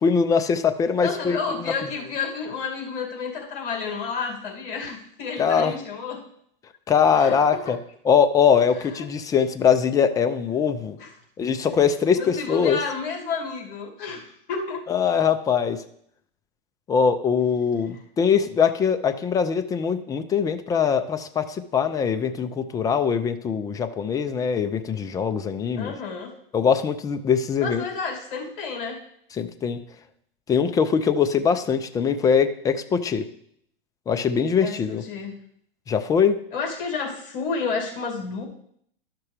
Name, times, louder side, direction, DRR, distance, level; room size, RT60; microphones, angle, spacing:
voice 1, 0.0-1.6 5.4-5.7 6.9-7.8 8.0-11.0 11.4-12.8 14.9-15.8 16.9-25.9 26.5-27.8 29.4-29.8 30.5-33.2 34.1-35.0 35.9-36.4, left 6 dB, 10° left, 10 dB, 0.4 m, -22 dB
voice 2, 1.0-6.2 7.1-7.4 7.7-7.8 9.0-9.1 11.0-11.1 12.2-14.8 25.8-26.3 27.6-29.0 34.6-35.4 36.5-38.5, left 5 dB, 60° left, 0 dB, 2.4 m, -31 dB
12.0 x 5.9 x 3.3 m, 0.68 s
hypercardioid pair, 125°, 29 cm